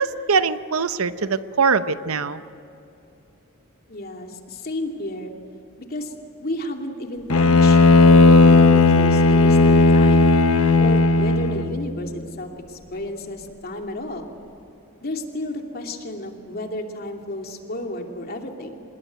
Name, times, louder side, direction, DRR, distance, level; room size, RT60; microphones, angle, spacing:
voice 1, 0.0-2.4, right 5 dB, 75° right, 12 dB, 0.9 m, -22 dB
voice 2, 3.9-5.3 5.8-6.1 6.4-10.3 10.8-14.3 15.0-18.8, left 1 dB, 45° left, 3 dB, 2.7 m, -32 dB
Bowed string instrument, 7.3-11.8, left 3 dB, 75° left, 1.0 m, -14 dB
26.5 x 20.5 x 9.3 m, 2.9 s
head